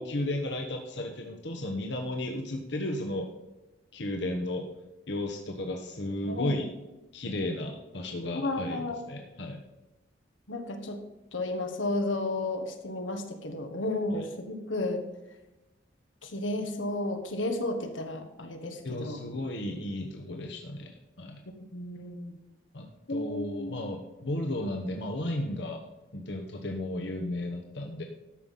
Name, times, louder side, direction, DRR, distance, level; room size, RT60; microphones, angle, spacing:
voice 1, 0.0-3.3 3.9-4.7 5.1-6.7 7.1-8.8 9.1-9.6 14.1-14.3 18.8-21.4 22.7-25.8 26.1-28.0, left 1 dB, 65° left, 2 dB, 1.2 m, -34 dB
voice 2, 6.2-6.6 8.3-9.0 10.5-11.0 11.3-15.0 16.2-19.2 21.4-22.4 23.1-24.0, left 2 dB, 85° left, 5 dB, 1.6 m, -33 dB
13.5 x 5.8 x 5.5 m, 1.0 s
head